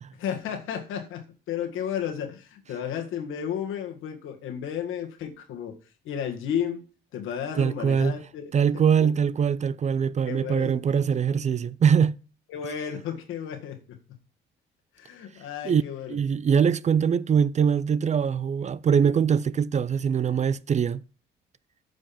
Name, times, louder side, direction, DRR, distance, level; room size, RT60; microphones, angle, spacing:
voice 1, 0.2-5.8 6.0-6.8 7.1-9.1 10.3-10.7 12.5-14.0 14.9-16.2, left 8 dB, 85° left, 1.8 m, -33 dB
voice 2, 7.6-8.2 8.5-12.2 15.6-15.8 16.1-21.0, right 7 dB, 35° right, 0.4 m, -23 dB
9.1 x 5.4 x 5.8 m
cardioid pair, 90°, 20 cm